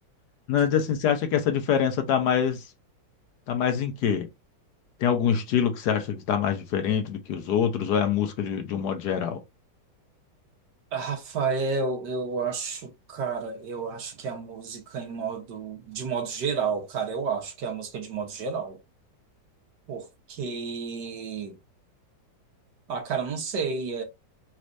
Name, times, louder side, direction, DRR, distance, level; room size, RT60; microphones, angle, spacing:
voice 1, 0.5-2.6 3.5-4.3 5.0-9.4, left 8 dB, 65° left, 1.2 m, -25 dB
voice 2, 10.9-18.8 19.9-21.5 22.9-24.0, right 5 dB, 65° right, 1.6 m, -31 dB
4.7 x 4.2 x 2.6 m
omnidirectional pair, 2.0 m